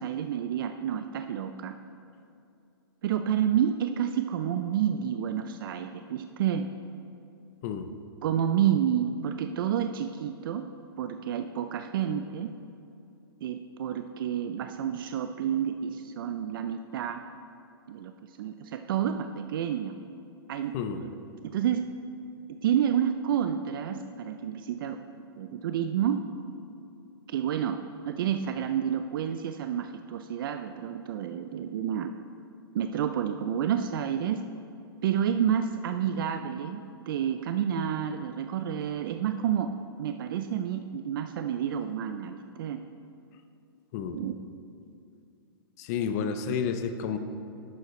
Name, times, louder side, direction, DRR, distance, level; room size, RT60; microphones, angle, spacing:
voice 1, 0.0-1.8 3.0-6.7 8.2-10.6 11.0-12.5 13.4-17.2 17.9-20.0 20.5-21.1 21.4-21.9 22.6-25.0 25.3-26.2 27.3-27.8 28.1-32.1 32.7-34.4 35.0-36.8 37.1-39.7 40.0-42.8 44.1-44.3, right 9 dB, 60° right, 8 dB, 0.4 m, -29 dB
voice 2, 45.8-47.2, left 6 dB, 40° left, 8 dB, 0.6 m, -30 dB
11.0 x 7.7 x 3.2 m, 2.6 s
hypercardioid pair, 145°, 13 cm